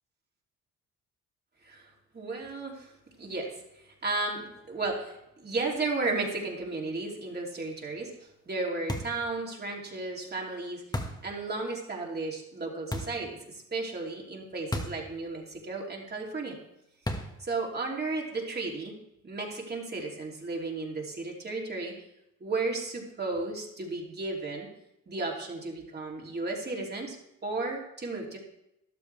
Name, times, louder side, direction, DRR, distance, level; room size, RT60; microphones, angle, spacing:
voice 1, 2.1-2.9 3.2-3.6 3.8-10.8 11.2-16.6 17.4-19.0 19.2-21.9 22.4-24.7 25.1-27.2 27.4-28.4, right 3 dB, 35° right, -1 dB, 3.1 m, -34 dB
sound 1, 8.9-9.3 10.9-11.3 12.9-13.3 14.7-15.1 15.4-15.5 17.1-17.4, left 1 dB, 15° left, 1.7 m, -34 dB
13.0 x 11.5 x 3.4 m, 0.84 s
cardioid pair, 90°, 30 cm